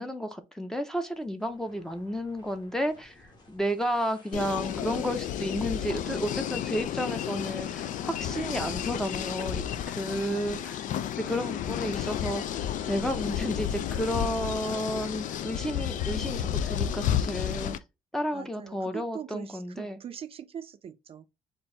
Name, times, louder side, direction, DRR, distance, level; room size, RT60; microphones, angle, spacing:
voice 1, 0.0-10.8 11.2-17.8 18.1-20.0, equal, 5° left, 0.6 m, -32 dB
sound 1, 1.0-14.9, left 2 dB, 30° left, 1.4 m, -57 dB
sound 2, 4.3-17.8, left 10 dB, 75° left, 0.4 m, -32 dB
voice 2, 10.1-10.7 18.3-21.3, right 8 dB, 45° right, 0.4 m, -42 dB
4.4 x 2.6 x 4.3 m
cardioid pair, 155°, 13 cm